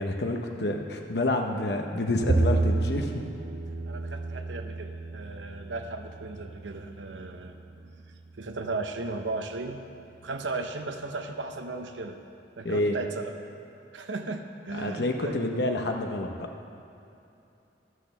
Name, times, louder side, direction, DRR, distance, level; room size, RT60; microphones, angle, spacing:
voice 1, 0.0-3.1 12.6-13.0 14.7-16.5, left 1 dB, 65° left, 4 dB, 0.8 m, -28 dB
Bowed string instrument, 2.3-8.6, right 2 dB, 40° right, 0.3 m, -31 dB
voice 2, 3.9-9.8 10.2-12.2 12.6-13.3 13.9-15.4, right 3 dB, 80° right, 6 dB, 0.8 m, -36 dB
12.5 x 6.3 x 6.9 m, 2.7 s
head